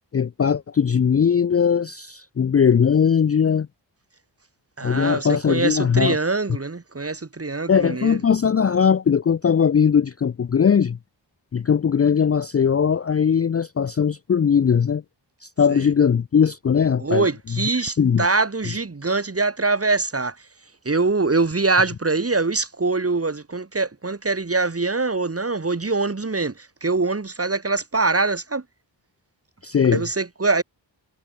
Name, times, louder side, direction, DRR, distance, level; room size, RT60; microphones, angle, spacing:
voice 1, 0.1-3.7 4.8-6.2 7.7-11.0 11.5-15.0 15.6-17.3 17.5-17.6 18.0-18.3 29.6-30.0, left 7 dB, 35° left, 0.4 m, -19 dB
voice 2, 4.8-8.2 15.7-15.8 17.0-20.4 20.9-28.6 29.9-30.6, right 3 dB, 30° right, 1.9 m, -23 dB
wide cardioid pair, 70°, 46 cm